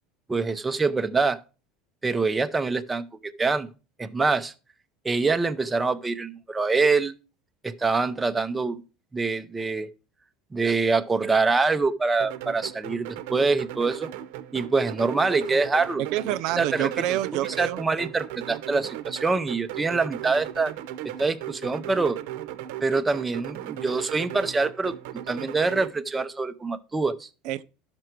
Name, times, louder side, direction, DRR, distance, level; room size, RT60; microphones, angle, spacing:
voice 1, 0.3-1.4 2.0-3.7 4.0-4.5 5.0-7.1 7.6-8.8 9.1-9.9 10.5-14.1 14.5-16.0 16.6-16.9 17.6-20.7 21.0-22.2 22.8-24.9 25.3-27.3, right 4 dB, 15° right, 0.6 m, -25 dB
sound 1, 12.2-25.9, right 13 dB, 80° right, 0.8 m, -37 dB
voice 2, 16.0-17.8 27.4-27.6, right 14 dB, 60° right, 0.4 m, -27 dB
12.5 x 6.0 x 4.6 m
supercardioid pair, 140°, 0 cm